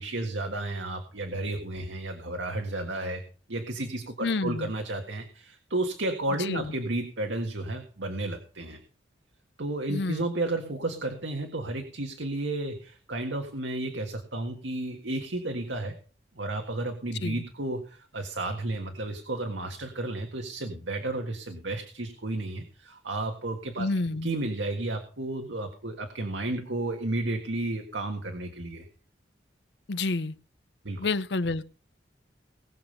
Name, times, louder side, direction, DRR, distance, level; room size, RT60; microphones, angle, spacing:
voice 1, 0.0-3.2 3.5-8.8 9.6-15.9 16.3-23.9 24.2-28.9 30.8-31.1, right 2 dB, 85° right, 1.7 m, -32 dB
voice 2, 4.2-4.7 6.5-6.7 9.9-10.3 17.2-17.4 23.8-24.3 29.9-30.3 31.0-31.6, left 3 dB, 70° left, 0.8 m, -29 dB
19.5 x 7.0 x 5.5 m
head